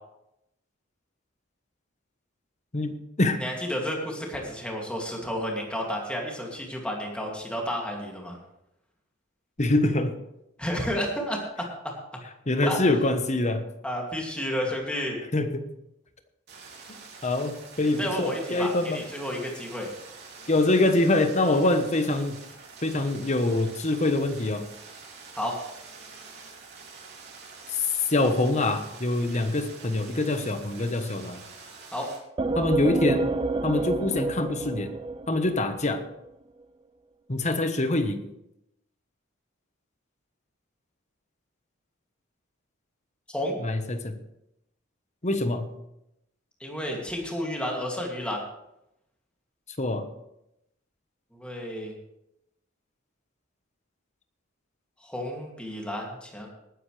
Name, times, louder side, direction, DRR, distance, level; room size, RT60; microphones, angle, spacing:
voice 1, 2.7-3.4 9.6-10.2 12.5-13.7 15.3-15.7 17.2-19.0 20.5-22.4 22.8-24.7 27.7-27.8 28.1-31.4 32.5-33.3 33.6-34.9 35.3-36.0 37.3-38.2 43.6-44.1 45.2-45.7 49.8-50.1, left 2 dB, 35° left, 8 dB, 1.2 m, -25 dB
voice 2, 3.4-8.4 10.6-11.7 12.6-13.0 13.8-15.2 18.0-19.9 25.3-25.6 31.9-32.1 43.3-43.6 46.6-48.4 51.3-51.9 55.0-56.5, equal, 5° left, -1 dB, 2.6 m, -31 dB
sound 1, 16.5-32.2, right 4 dB, 55° right, 3.2 m, -46 dB
sound 2, 32.4-36.0, right 3 dB, 25° right, 0.5 m, -29 dB
19.5 x 9.9 x 3.4 m, 0.84 s
head